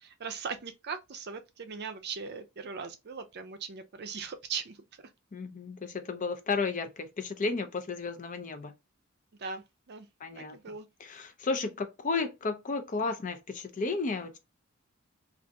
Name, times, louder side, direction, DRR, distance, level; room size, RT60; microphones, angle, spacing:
voice 1, 0.0-4.8 9.4-10.1 10.4-10.9, right 5 dB, 50° right, 0.5 m, -39 dB
voice 2, 5.3-8.7 10.2-10.6 11.0-14.4, left 4 dB, 35° left, 0.5 m, -33 dB
3.4 x 2.5 x 2.7 m
head